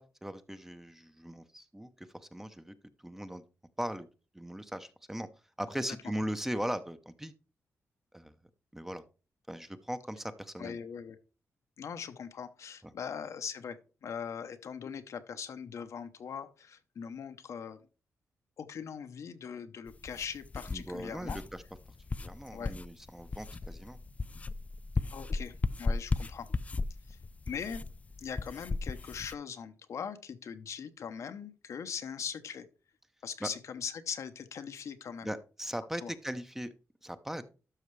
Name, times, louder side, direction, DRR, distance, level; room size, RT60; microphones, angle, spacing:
voice 1, 0.0-2.7 3.0-3.4 3.8-4.1 4.3-5.3 5.6-7.3 8.1-8.3 8.7-9.0 9.5-10.8 20.7-21.6 22.2-24.0 33.4-33.5 35.2-36.7 37.0-37.4, equal, 5° right, 10 dB, 0.6 m, -39 dB
voice 2, 10.6-11.2 11.8-17.8 18.6-21.4 22.5-22.7 25.0-26.5 27.1-27.2 27.5-27.8 28.2-32.7 33.2-35.3 36.0-36.1, left 7 dB, 70° left, 9 dB, 0.8 m, -41 dB
sound 1, 19.9-29.3, left 3 dB, 25° left, 0.3 m, -36 dB
12.5 x 5.6 x 3.2 m, 0.35 s
wide cardioid pair, 120°, 5 cm